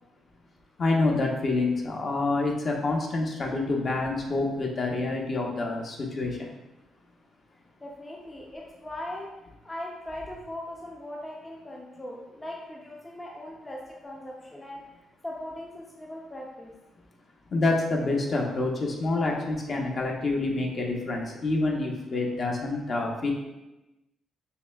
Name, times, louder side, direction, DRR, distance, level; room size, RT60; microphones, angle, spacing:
voice 1, 0.8-6.5 17.5-23.3, left 2 dB, 45° left, 0 dB, 0.8 m, -27 dB
voice 2, 7.8-9.3 9.6-14.8 15.2-16.7, left 1 dB, 15° left, -2 dB, 0.5 m, -39 dB
6.6 x 2.2 x 2.2 m, 1.0 s
cardioid pair, 90°, 0 cm